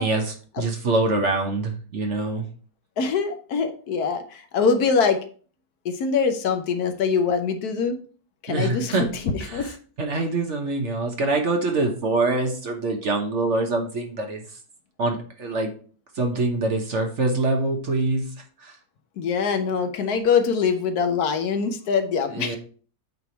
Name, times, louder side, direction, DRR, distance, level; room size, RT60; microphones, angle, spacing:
voice 1, 0.0-2.5 8.5-9.1 9.4-14.6 15.0-15.7 16.1-18.8 22.3-22.6, right 2 dB, 50° right, 3 dB, 1.2 m, -25 dB
voice 2, 3.0-5.2 5.8-8.0 8.4-9.1 9.5-9.7 19.2-22.6, left 5 dB, 70° left, 7 dB, 1.3 m, -23 dB
8.1 x 3.4 x 4.4 m, 0.42 s
omnidirectional pair, 1.8 m